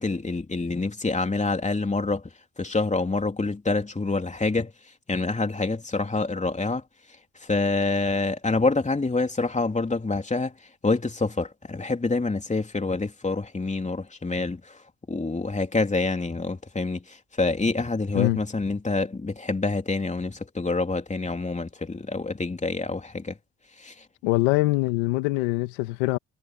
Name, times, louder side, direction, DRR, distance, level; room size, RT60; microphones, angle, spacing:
voice 1, 0.0-2.3 2.6-4.7 5.1-6.8 7.4-10.5 10.8-14.8 15.1-23.4 23.8-24.0, left 3 dB, 20° left, 3.4 m, -27 dB
voice 2, 24.2-26.2, left 20 dB, 90° left, 1.6 m, -23 dB
supercardioid pair, 65°, 36 cm